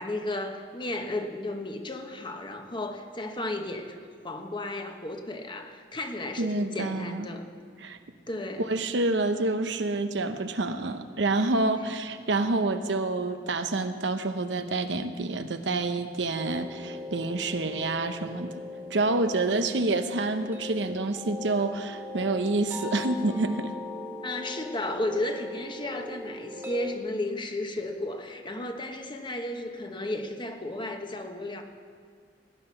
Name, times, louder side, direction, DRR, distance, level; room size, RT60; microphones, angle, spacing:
voice 1, 0.0-7.4 8.3-8.6 24.2-31.6, left 1 dB, 25° left, 5 dB, 1.2 m, -34 dB
voice 2, 6.4-7.3 7.8-8.0 8.6-18.5 18.9-23.7, right 2 dB, 80° right, 9 dB, 0.8 m, -28 dB
sound 1, 16.4-27.0, left 2 dB, 10° right, 1.7 m, -39 dB
18.0 x 9.9 x 5.8 m, 2.1 s
head